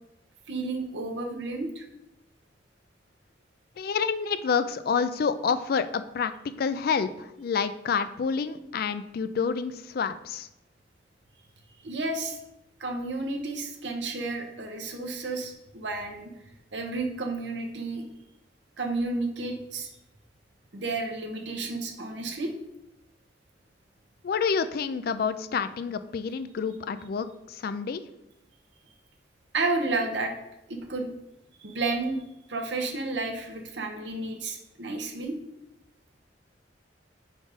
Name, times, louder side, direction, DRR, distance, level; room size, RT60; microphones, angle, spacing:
voice 1, 0.5-1.8 11.8-12.4 12.8-16.3 16.7-18.0 18.8-19.9 20.7-22.5 29.5-30.3 30.7-31.1 31.6-32.2 32.5-35.4, right 3 dB, 70° right, 3 dB, 1.0 m, -31 dB
voice 2, 3.8-6.3 6.6-7.1 7.4-10.5 24.2-27.3 27.6-28.0, left 6 dB, 55° left, 12 dB, 0.3 m, -28 dB
5.1 x 4.1 x 4.9 m, 0.88 s
head